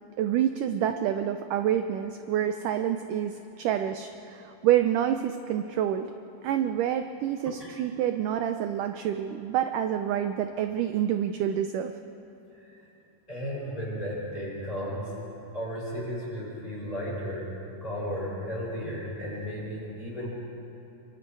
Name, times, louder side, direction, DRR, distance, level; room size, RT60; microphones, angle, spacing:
voice 1, 0.2-6.1 6.4-11.9, right 10 dB, 75° right, 7 dB, 2.1 m, -27 dB
voice 2, 13.3-15.1 15.5-17.5 17.8-20.3, equal, 10° left, -6 dB, 6.9 m, -34 dB
27.5 x 25.0 x 4.7 m, 3.0 s
omnidirectional pair, 4.2 m